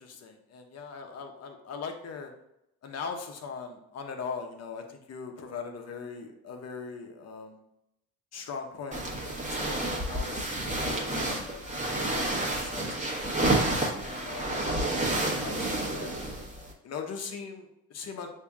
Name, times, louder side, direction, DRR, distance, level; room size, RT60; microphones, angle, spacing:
voice 1, 0.0-2.3 2.8-7.6 8.3-12.9 13.7-16.2 16.8-18.3, left 5 dB, 55° left, 4 dB, 0.8 m, -41 dB
sound 1, 8.9-16.7, right 1 dB, 25° right, 1.2 m, -30 dB
6.7 x 2.7 x 2.3 m, 0.84 s
cardioid pair, 90°, 30 cm